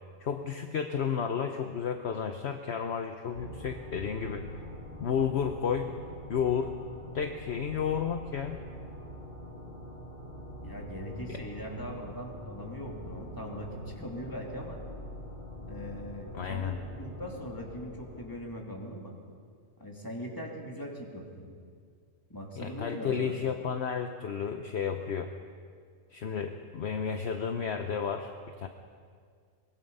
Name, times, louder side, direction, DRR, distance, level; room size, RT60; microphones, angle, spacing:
voice 1, 0.2-4.5 5.0-5.9 6.3-6.7 7.1-8.6 11.3-11.4 16.3-16.8 22.6-25.3 26.1-28.7, left 7 dB, 55° left, 6 dB, 1.1 m, -32 dB
sound 1, 3.3-18.5, equal, 40° left, 2.9 m, -44 dB
voice 2, 10.6-14.8 15.7-19.1 19.8-21.5 22.3-23.4, equal, 15° left, -1 dB, 2.9 m, -40 dB
23.5 x 21.0 x 5.5 m, 2.1 s
omnidirectional pair, 1.3 m